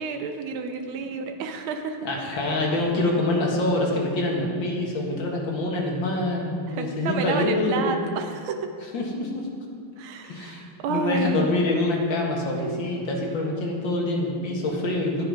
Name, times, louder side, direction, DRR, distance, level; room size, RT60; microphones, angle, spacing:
voice 1, 0.0-2.0 6.7-8.6 10.0-11.5, right 4 dB, 80° right, 6 dB, 1.6 m, -30 dB
voice 2, 2.0-7.9 8.9-9.5 10.3-15.2, left 2 dB, 65° left, -1 dB, 2.4 m, -25 dB
14.0 x 8.7 x 5.1 m, 2.2 s
omnidirectional pair, 2.3 m